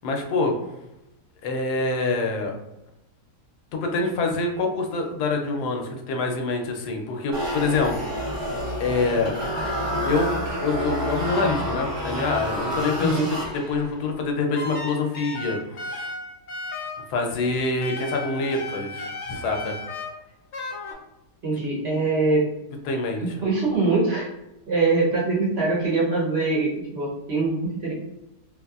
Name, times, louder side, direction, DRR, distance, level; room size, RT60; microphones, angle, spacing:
voice 1, 0.0-0.5 1.4-2.5 3.7-8.1 8.8-9.5 10.0-16.1 17.1-19.7 22.9-23.4, left 3 dB, 80° left, 3 dB, 1.1 m, -26 dB
sound 1, 7.3-13.9, equal, 30° right, 0.5 m, -29 dB
sound 2, 14.6-17.1 17.8-20.1 20.5-20.9, left 2 dB, 60° left, 0.7 m, -34 dB
voice 2, 21.4-22.4 23.2-24.3 24.7-27.9, right 3 dB, 50° right, -6 dB, 0.8 m, -23 dB
3.1 x 2.6 x 2.3 m, 0.91 s
omnidirectional pair, 1.7 m